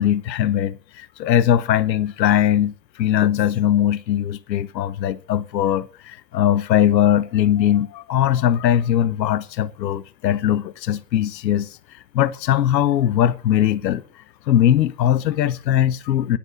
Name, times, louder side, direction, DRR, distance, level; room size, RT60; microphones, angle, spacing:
voice 1, 0.0-11.8 12.1-14.0 14.5-16.4, left 11 dB, 85° left, 1.0 m, -20 dB
10.5 x 10.5 x 6.5 m
hypercardioid pair, 95°, 50 cm